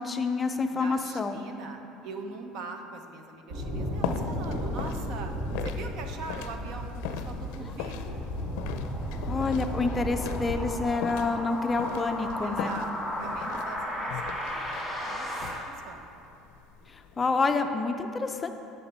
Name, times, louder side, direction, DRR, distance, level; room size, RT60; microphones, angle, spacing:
voice 1, 0.0-1.4 7.6-7.7 9.3-12.8 16.9-18.5, left 4 dB, 20° left, 6 dB, 0.4 m, -28 dB
voice 2, 0.7-5.3 5.6-8.3 12.4-16.2, right 4 dB, 55° right, 5 dB, 0.8 m, -42 dB
sound 1, 3.5-10.8, equal, 85° right, 2.1 m, -34 dB
sound 2, 3.6-17.6, left 7 dB, 80° left, 0.5 m, -40 dB
sound 3, 6.9-15.5, equal, 5° right, 2.1 m, -36 dB
10.0 x 5.8 x 4.3 m, 2.7 s
cardioid pair, 140°, 0 cm